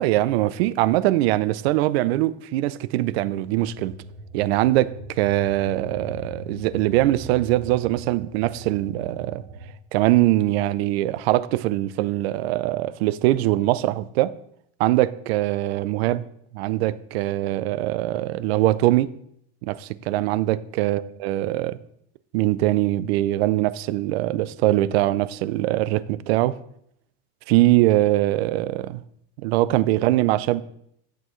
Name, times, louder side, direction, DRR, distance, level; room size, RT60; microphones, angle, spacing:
voice 1, 0.0-4.0 4.3-9.4 9.9-14.3 14.8-16.2 16.5-19.1 19.6-21.8 22.3-26.6 27.5-29.0 29.4-30.6, right 16 dB, 90° right, 0.6 m, -22 dB
sound 1, 3.2-9.7, right 2 dB, 60° right, 1.1 m, -40 dB
11.5 x 7.7 x 3.1 m
cardioid pair, 160°, 30 cm